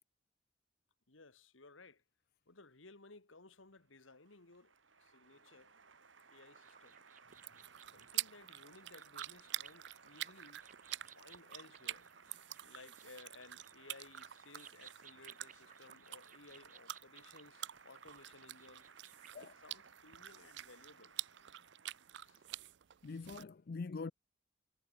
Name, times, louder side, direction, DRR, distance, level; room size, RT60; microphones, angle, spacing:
voice 1, 1.1-2.0 2.5-5.7 6.3-7.0 7.8-10.7 11.1-12.1 12.6-18.9 19.3-21.1 22.2-22.4, left 3 dB, 90° left, 2.2 m, -59 dB
Applause, 3.7-22.6, right 5 dB, 85° right, 4.1 m, -62 dB
sound 1, 6.5-19.3, right 8 dB, 40° right, 2.1 m, -61 dB
sound 2, 7.3-23.4, right 14 dB, 60° right, 0.4 m, -48 dB
voice 2, 23.0-24.1, left 4 dB, 50° left, 0.4 m, -43 dB
head